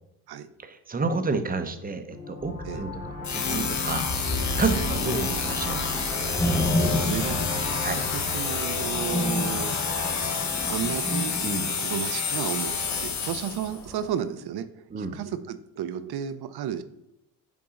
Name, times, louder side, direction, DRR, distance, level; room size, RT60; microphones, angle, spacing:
voice 1, 0.6-4.1 4.6-6.0 7.8-8.0 11.4-11.7 14.9-15.2, right 4 dB, 20° right, 8 dB, 0.7 m, -30 dB
sound 1, 2.1-12.4, left 4 dB, 90° left, 1.6 m, -36 dB
sound 2, 2.4-14.1, equal, 5° left, 1.3 m, -32 dB
sound 3, 3.2-13.8, left 5 dB, 35° left, 1.0 m, -29 dB
voice 2, 6.8-9.7 10.7-11.3 11.8-12.7 13.0-16.8, right 9 dB, 55° right, 12 dB, 0.7 m, -33 dB
7.0 x 3.8 x 3.7 m, 0.87 s
supercardioid pair, 85°, 47 cm